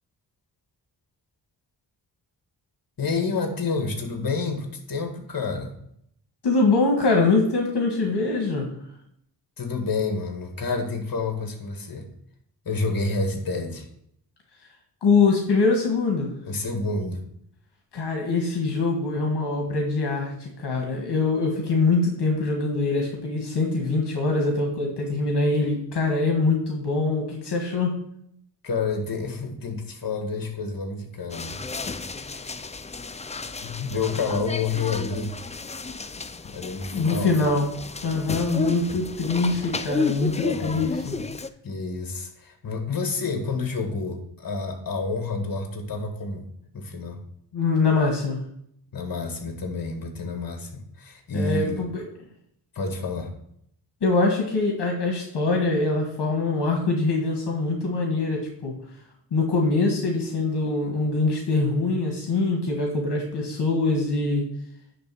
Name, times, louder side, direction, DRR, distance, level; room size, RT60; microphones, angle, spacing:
voice 1, 3.0-5.8 9.6-12.1 12.6-13.9 16.4-17.2 28.6-31.6 31.9-32.5 33.6-35.4 36.4-37.4 40.4-41.3 41.6-46.5 46.7-47.2 48.9-51.8 52.7-53.3, left 4 dB, 55° left, 4 dB, 1.8 m, -29 dB
voice 2, 6.4-8.7 15.0-16.3 17.9-28.0 36.9-37.7 38.0-41.1 47.5-48.4 51.3-52.0 54.0-58.7 59.3-64.5, left 3 dB, 70° left, 1 dB, 1.6 m, -23 dB
sound 1, 31.3-41.5, left 4 dB, 15° left, 0.4 m, -32 dB
10.5 x 3.5 x 6.2 m, 0.71 s
cardioid pair, 80°, 41 cm